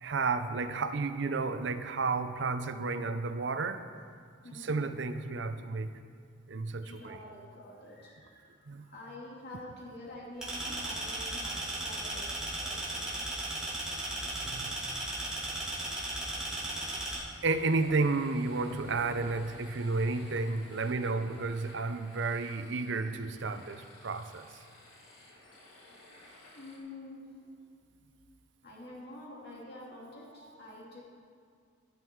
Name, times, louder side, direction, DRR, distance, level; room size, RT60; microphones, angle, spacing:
voice 1, 0.0-3.8 4.5-5.9 6.5-7.2 8.7-8.8 14.4-14.8 16.7-16.8 17.4-24.6 30.4-30.5, right 3 dB, 60° right, 10 dB, 0.6 m, -32 dB
voice 2, 4.4-5.0 6.8-8.5 8.8-13.2 16.2-16.4 18.1-18.2 26.5-27.3 28.6-31.0, left 1 dB, 50° left, -5 dB, 2.7 m, -47 dB
sound 1, 10.4-17.2, right 1 dB, 5° right, 2.3 m, -36 dB
sound 2, 17.5-26.8, left 1 dB, 80° left, 2.9 m, -55 dB
12.0 x 11.5 x 4.6 m, 2.2 s
head